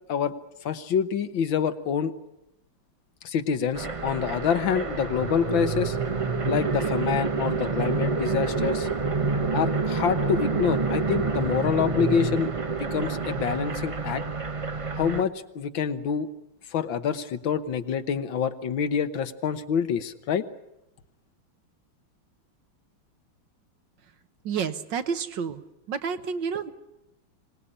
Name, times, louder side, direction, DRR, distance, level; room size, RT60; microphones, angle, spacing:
voice 1, 0.7-2.1 3.2-6.0 6.5-8.9 9.5-12.5 12.8-14.2 15.0-16.3 16.7-20.4, left 7 dB, 75° left, 10 dB, 1.9 m, -26 dB
sound 1, 3.7-15.2, right 4 dB, 40° right, 0.4 m, -28 dB
voice 2, 24.4-25.6 25.9-26.7, right 6 dB, 70° right, 10 dB, 1.8 m, -29 dB
25.5 x 18.5 x 10.0 m, 0.87 s
omnidirectional pair, 2.1 m